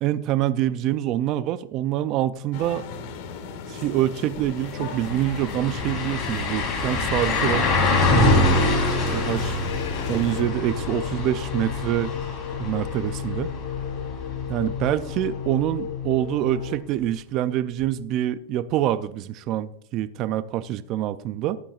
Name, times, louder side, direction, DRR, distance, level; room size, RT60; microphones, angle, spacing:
voice 1, 0.0-2.8 3.7-7.7 8.1-8.5 9.1-9.6 10.1-12.1 12.6-13.5 14.5-21.6, right 12 dB, 30° right, 14 dB, 0.3 m, -26 dB
sound 1, 2.5-10.4, left 5 dB, 45° left, 1.7 m, -37 dB
sound 2, 4.4-4.5 4.8-14.6 14.9-15.0 17.8-17.9, left 2 dB, 20° left, 3.4 m, -25 dB
sound 3, 8.4-16.8, left 7 dB, 80° left, 1.3 m, -32 dB
14.5 x 11.5 x 2.4 m, 0.74 s
supercardioid pair, 170°, 0 cm